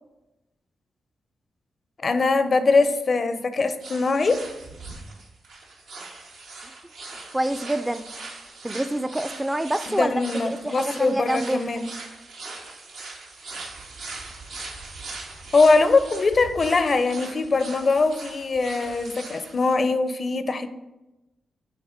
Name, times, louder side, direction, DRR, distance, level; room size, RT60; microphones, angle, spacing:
voice 1, 2.0-4.4 9.9-11.9 15.5-20.7, left 3 dB, 50° left, 10 dB, 0.5 m, -22 dB
sound 1, 3.8-19.7, right 3 dB, 90° right, 0.9 m, -40 dB
voice 2, 7.3-8.0 8.6-10.2 10.6-11.6, right 1 dB, 15° right, 11 dB, 0.3 m, -26 dB
7.3 x 2.8 x 4.9 m, 0.99 s
cardioid pair, 55°, 0 cm